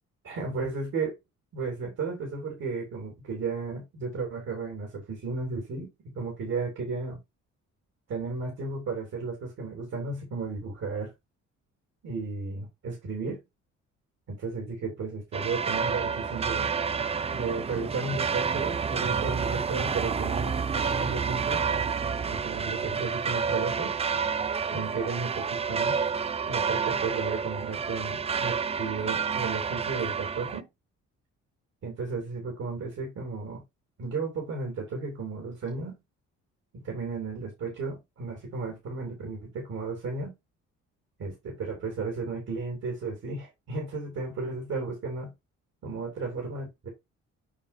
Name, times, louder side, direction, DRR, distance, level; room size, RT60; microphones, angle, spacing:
voice 1, 0.2-1.2 1.5-7.2 8.1-11.1 12.0-13.4 14.3-16.7 17.3-21.6 22.3-23.9 24.7-26.0 26.5-30.7 31.8-33.6 34.0-35.9 36.7-40.3 41.2-45.3 45.8-46.9, right 4 dB, 60° right, 3.1 m, -34 dB
sound 1, 15.3-30.6, right 6 dB, 20° right, 0.4 m, -29 dB
7.1 x 5.5 x 2.7 m
cardioid pair, 90°, 30 cm